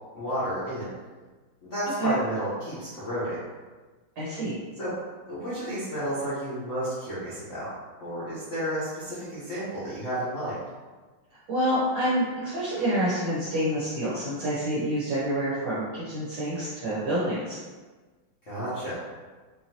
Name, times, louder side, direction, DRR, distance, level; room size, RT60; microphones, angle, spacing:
voice 1, 0.1-0.9 1.6-3.4 4.8-4.9 5.3-7.7 8.0-10.6 18.5-19.0, equal, 45° left, -11 dB, 1.1 m, -31 dB
voice 2, 4.2-4.5 11.5-17.6, right 1 dB, 65° right, -10 dB, 1.7 m, -27 dB
4.8 x 2.8 x 2.9 m, 1.3 s
omnidirectional pair, 2.3 m